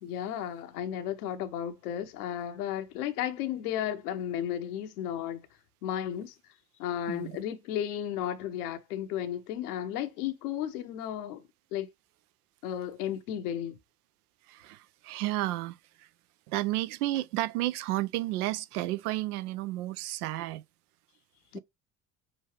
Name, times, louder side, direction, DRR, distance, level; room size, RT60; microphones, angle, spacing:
voice 1, 0.0-5.5 5.8-6.3 6.8-11.9 12.6-13.8 21.5-21.6, left 10 dB, 65° left, 0.9 m, -34 dB
voice 2, 14.5-15.8 16.5-20.6 21.5-21.6, right 17 dB, 65° right, 0.5 m, -32 dB
6.2 x 2.6 x 3.3 m
figure-of-eight pair, 55°, 49 cm